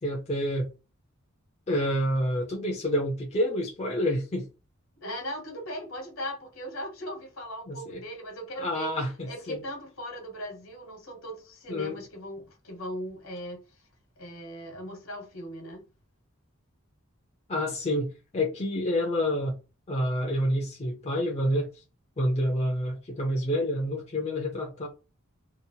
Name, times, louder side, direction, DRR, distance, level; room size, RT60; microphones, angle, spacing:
voice 1, 0.0-0.7 1.7-4.5 7.7-8.0 8.6-9.6 11.7-12.0 17.5-19.6 19.9-21.7 22.2-24.9, equal, 30° left, 0.5 m, -28 dB
voice 2, 5.0-8.9 9.3-13.8 14.2-15.8, equal, 70° left, 1.2 m, -38 dB
2.8 x 2.0 x 2.7 m
head